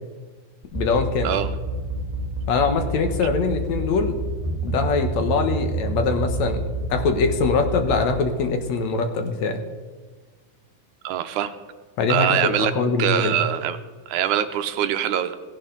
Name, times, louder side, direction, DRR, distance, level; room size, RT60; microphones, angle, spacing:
sound 1, 0.6-8.0, right 2 dB, 15° right, 1.8 m, -28 dB
voice 1, 0.7-1.3 2.5-4.2 4.6-6.6 6.9-9.6 12.0-13.4, left 4 dB, 65° left, 6 dB, 2.3 m, -23 dB
voice 2, 11.0-11.5 12.1-12.7 13.0-13.8 14.1-15.4, right 10 dB, 80° right, 10 dB, 2.2 m, -23 dB
16.5 x 16.5 x 3.9 m, 1.4 s
omnidirectional pair, 3.6 m